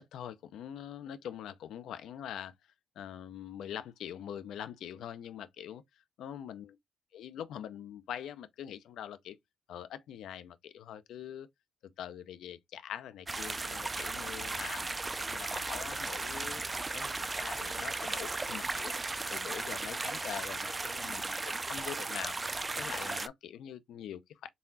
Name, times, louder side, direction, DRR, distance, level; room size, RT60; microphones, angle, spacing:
voice 1, 0.0-2.5 3.0-5.8 6.2-6.8 7.1-9.4 9.7-11.5 12.0-16.6 16.9-18.9 19.3-22.4 22.8-24.5, left 10 dB, 75° left, 0.5 m, -43 dB
sound 1, 13.3-23.3, right 3 dB, 20° right, 0.4 m, -36 dB
4.0 x 3.6 x 2.7 m
cardioid pair, 90°, 0 cm